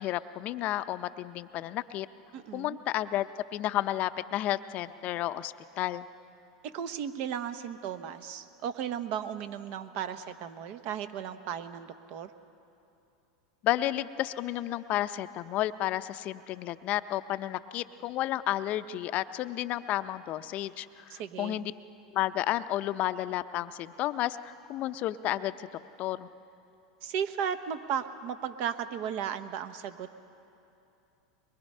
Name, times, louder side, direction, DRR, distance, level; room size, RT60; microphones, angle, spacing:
voice 1, 0.0-2.1 2.5-6.0 13.6-21.7 22.1-25.7 26.0-26.3, left 14 dB, 45° left, 13 dB, 0.6 m, -32 dB
voice 2, 2.3-2.8 6.6-12.3 21.1-21.6 27.0-30.2, right 8 dB, 55° right, 10 dB, 1.0 m, -35 dB
22.5 x 22.0 x 5.5 m, 2.8 s
hypercardioid pair, 100°, 3 cm